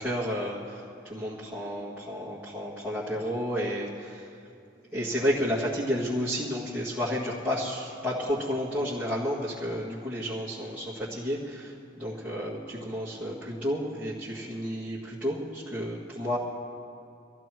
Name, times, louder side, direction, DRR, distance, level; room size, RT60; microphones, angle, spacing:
voice 1, 0.0-4.3 4.9-16.4, equal, 10° right, -11 dB, 2.2 m, -31 dB
26.5 x 15.0 x 3.1 m, 2.5 s
head